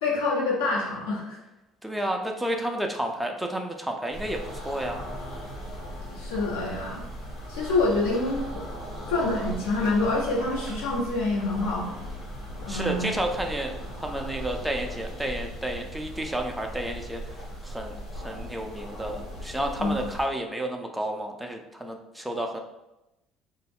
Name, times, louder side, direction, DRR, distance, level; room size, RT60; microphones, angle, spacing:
voice 1, 0.0-1.4 6.2-7.0 7.5-8.5 9.1-11.9 12.6-13.1 19.8-20.0, left 2 dB, 80° left, -5 dB, 1.0 m, -26 dB
voice 2, 1.8-5.1 12.7-22.6, right 1 dB, 5° right, 2 dB, 0.4 m, -31 dB
sound 1, 4.1-20.3, equal, 55° left, 1.2 m, -38 dB
2.3 x 2.0 x 3.5 m, 0.94 s
hypercardioid pair, 65°, 0 cm